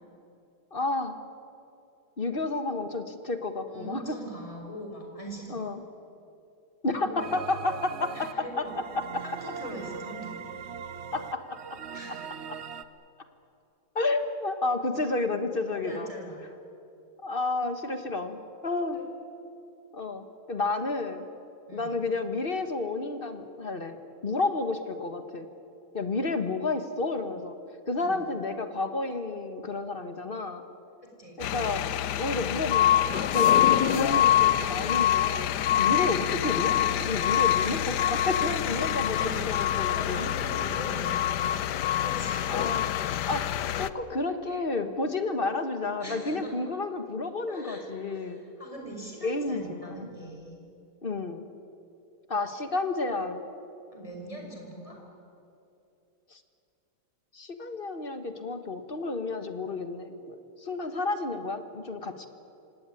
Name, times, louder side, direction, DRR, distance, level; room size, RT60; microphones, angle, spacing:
voice 1, 0.7-1.2 2.2-4.2 5.5-5.8 6.8-8.7 8.9-9.2 11.1-11.8 12.5-12.6 13.9-16.1 17.2-19.0 19.9-21.3 21.7-24.0 24.2-25.5 25.9-27.5 27.9-30.6 31.4-31.9 32.1-33.0 33.3-35.5 35.8-40.3 42.5-42.8 43.3-48.4 49.2-50.1 51.0-51.4 52.3-53.4 56.3-56.4 57.3-62.3, left 3 dB, 30° left, 9 dB, 1.3 m, -31 dB
voice 2, 3.7-5.6 6.9-7.3 8.1-8.8 9.2-10.4 11.9-12.2 15.7-16.4 18.9-19.1 21.7-22.0 28.0-28.2 31.2-31.4 32.2-32.5 35.9-36.2 39.0-39.5 39.9-41.6 41.9-42.6 46.0-46.5 47.5-50.6 53.9-55.0, right 1 dB, 15° left, 0 dB, 5.1 m, -41 dB
sound 1, 7.2-12.8, right 7 dB, 60° right, 0.7 m, -40 dB
sound 2, 31.4-43.9, left 11 dB, 65° left, 1.1 m, -25 dB
25.0 x 18.5 x 9.8 m, 2.8 s
omnidirectional pair, 2.3 m